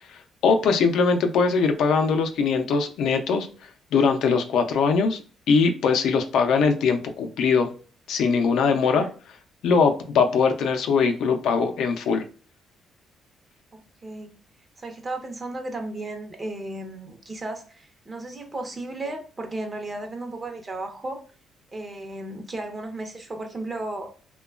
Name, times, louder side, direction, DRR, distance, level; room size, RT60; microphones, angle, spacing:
voice 1, 0.4-3.5 3.9-5.2 5.5-7.7 8.1-9.1 9.6-12.2, left 5 dB, 80° left, 5 dB, 0.4 m, -21 dB
voice 2, 13.7-14.4 14.8-21.2 21.7-24.1, right 2 dB, 30° right, 5 dB, 0.7 m, -34 dB
2.9 x 2.2 x 2.3 m, 0.39 s
cardioid pair, 90°, 0 cm